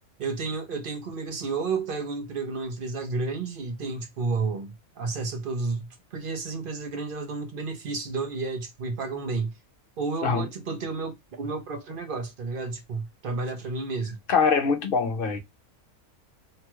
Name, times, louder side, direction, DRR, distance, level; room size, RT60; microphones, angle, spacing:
voice 1, 0.2-9.5 10.0-14.2, right 4 dB, 55° right, 0.6 m, -31 dB
voice 2, 14.3-15.4, left 5 dB, 55° left, 0.7 m, -23 dB
2.9 x 2.3 x 2.9 m
omnidirectional pair, 1.4 m